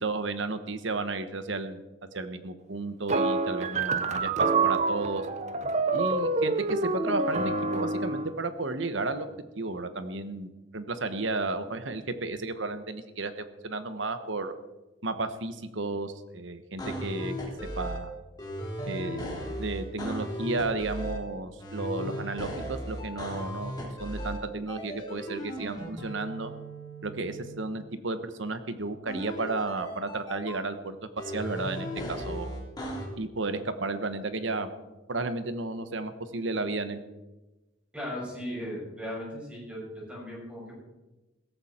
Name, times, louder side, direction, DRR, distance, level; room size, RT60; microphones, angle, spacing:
voice 1, 0.0-1.8 2.1-5.3 5.9-9.3 9.5-14.5 15.0-17.4 17.8-18.1 18.9-19.3 19.6-23.7 24.0-26.5 27.0-31.0 31.2-32.6 33.2-34.7 35.1-37.0, right 3 dB, 70° right, 10 dB, 1.2 m, -33 dB
sound 1, 3.1-8.3, right 3 dB, 35° right, 0.8 m, -27 dB
sound 2, 16.8-18.0 18.4-21.2 21.6-24.4 24.7-27.6 29.1-30.6 31.2-33.1, equal, 20° left, 3.7 m, -36 dB
voice 2, 37.9-39.8 40.1-40.8, equal, 5° right, -5 dB, 6.7 m, -37 dB
16.5 x 14.0 x 4.4 m, 1.1 s
head